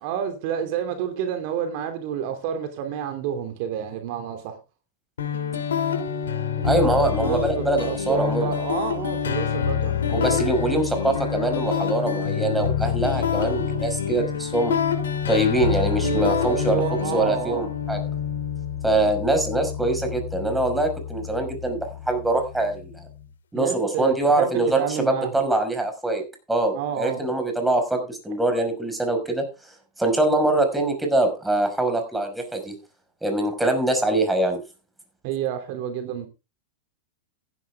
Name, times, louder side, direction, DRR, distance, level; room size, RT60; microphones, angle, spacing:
voice 1, 0.0-4.6 6.6-6.9 7.1-10.4 16.0-17.7 19.0-19.1 23.5-25.3 26.7-27.3 35.2-36.3, right 8 dB, 55° right, 3.1 m, -29 dB
sound 1, 5.2-23.1, left 8 dB, 90° left, 3.2 m, -27 dB
voice 2, 6.6-8.5 10.1-14.7 15.3-16.8 17.1-18.0 18.8-23.1 23.5-26.2 26.5-29.4 30.0-32.7 33.2-34.6, right 2 dB, 5° right, 5.6 m, -23 dB
15.5 x 11.0 x 3.7 m
hypercardioid pair, 115°, 0 cm